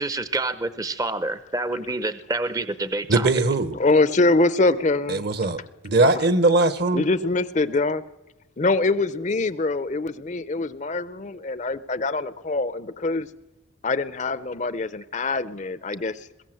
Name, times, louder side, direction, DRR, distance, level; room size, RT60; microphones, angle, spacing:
voice 1, 0.0-3.4, right 2 dB, 15° right, 12 dB, 0.6 m, -28 dB
voice 2, 3.1-3.8 5.1-5.6 5.8-7.0, right 2 dB, 55° right, 13 dB, 1.1 m, -20 dB
voice 3, 3.8-5.2 6.0-6.2 6.9-8.0 8.6-13.3 13.8-16.2, left 3 dB, 35° left, 15 dB, 0.6 m, -24 dB
21.0 x 16.5 x 7.7 m, 1.1 s
head